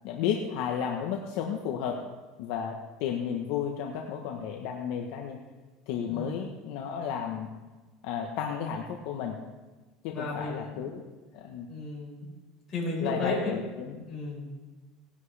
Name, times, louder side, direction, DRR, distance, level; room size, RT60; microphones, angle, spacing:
voice 1, 0.0-2.0 2.4-5.4 5.9-7.6 8.0-9.5 10.0-11.0 11.3-11.7 13.0-14.0, left 8 dB, 60° left, 2 dB, 1.0 m, -33 dB
voice 2, 10.1-10.8 11.7-12.3 12.7-13.6 14.1-14.5, left 2 dB, 30° left, -4 dB, 4.7 m, -33 dB
17.5 x 10.5 x 3.3 m, 1.3 s
cardioid pair, 165°, 0 cm